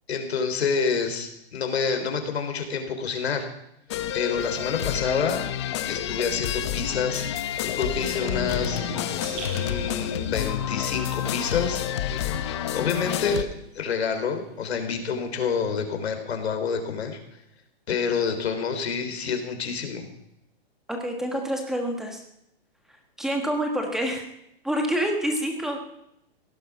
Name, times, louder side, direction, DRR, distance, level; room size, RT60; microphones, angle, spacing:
voice 1, 0.1-3.5 4.1-5.4 5.9-7.3 7.6-8.8 9.5-11.8 12.7-13.5 13.7-17.2 17.9-20.1, left 6 dB, 85° left, 6 dB, 3.8 m, -27 dB
sound 1, 3.9-13.4, left 10 dB, 25° left, 0.8 m, -29 dB
sound 2, 8.1-13.5 13.8-15.5, right 2 dB, 20° right, 2.4 m, -42 dB
voice 2, 20.9-22.2 23.2-24.2 24.6-25.8, equal, ahead, 3 dB, 1.4 m, -27 dB
17.5 x 12.0 x 6.1 m, 0.80 s
hypercardioid pair, 175°, 31 cm